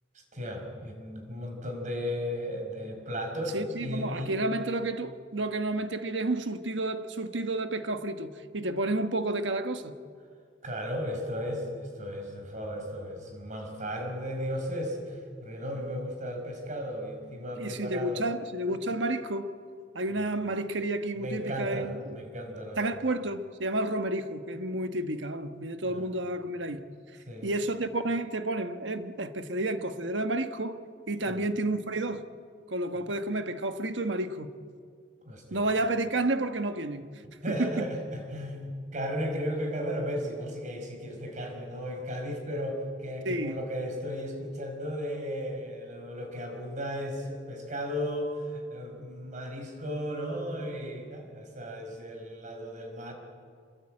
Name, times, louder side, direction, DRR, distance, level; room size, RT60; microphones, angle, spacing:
voice 1, 0.1-4.3 10.6-18.2 20.2-20.3 21.2-23.0 25.9-26.1 27.3-27.5 31.3-31.5 33.0-33.1 35.3-35.6 37.2-53.1, equal, 45° right, 5.4 m, -35 dB
voice 2, 3.5-9.9 17.6-19.5 19.9-22.0 22.8-26.8 27.4-30.8 31.1-32.2 32.7-34.5 35.5-37.1 37.5-37.8 43.2-43.6, right 2 dB, 90° right, 1.4 m, -30 dB
26.5 x 21.5 x 8.9 m
head